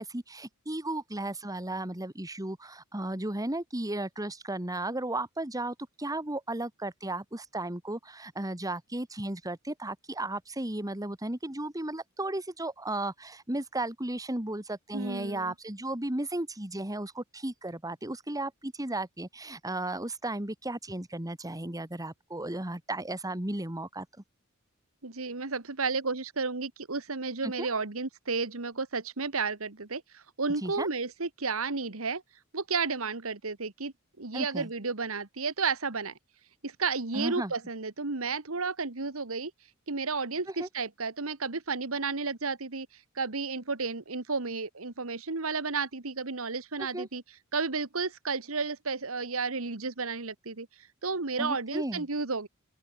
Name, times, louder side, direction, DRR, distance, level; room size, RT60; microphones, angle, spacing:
voice 1, 0.0-24.1 27.4-27.7 30.6-30.9 34.3-34.7 37.1-37.5 40.6-40.7 46.8-47.1 51.4-52.1, right 1 dB, 15° right, 2.0 m, -35 dB
voice 2, 14.9-15.5 25.0-32.2 32.5-36.1 36.6-39.5 39.9-47.2 47.5-52.5, right 4 dB, 75° right, 1.7 m, -32 dB
open air
head